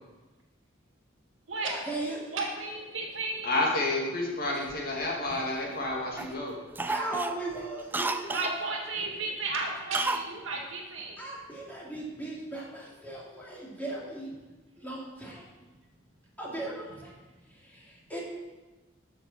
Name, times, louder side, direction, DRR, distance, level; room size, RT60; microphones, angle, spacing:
voice 1, 1.6-2.4 6.8-8.3 11.2-14.3 14.8-15.6 16.4-17.1 17.5-18.2, right 2 dB, 10° left, -5 dB, 2.6 m, -37 dB
voice 2, 2.3-3.5 8.3-11.2, right 3 dB, 75° right, 1 dB, 1.9 m, -33 dB
voice 3, 3.4-6.6, left 2 dB, 50° left, -2 dB, 2.1 m, -30 dB
Cough, 4.5-5.8 6.2-6.4 6.7-8.6 9.9-10.3 10.6-10.7, right 3 dB, 10° right, 0.3 m, -33 dB
13.5 x 6.4 x 4.1 m, 1.2 s
head